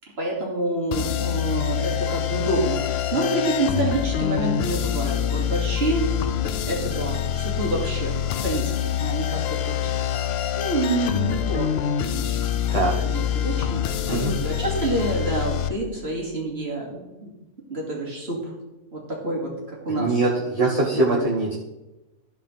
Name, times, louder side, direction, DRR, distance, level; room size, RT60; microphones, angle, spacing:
voice 1, 0.2-6.1 6.7-8.2 8.4-9.9 10.6-11.7 12.0-17.3 17.7-18.5 18.9-20.2 20.6-21.2, right 2 dB, 40° right, -3 dB, 2.8 m, -28 dB
sound 1, 0.9-15.7, left 10 dB, 80° left, 0.5 m, -26 dB
voice 2, 19.9-21.5, right 2 dB, 25° right, -5 dB, 1.4 m, -22 dB
13.5 x 4.9 x 5.5 m, 1.0 s
omnidirectional pair, 1.6 m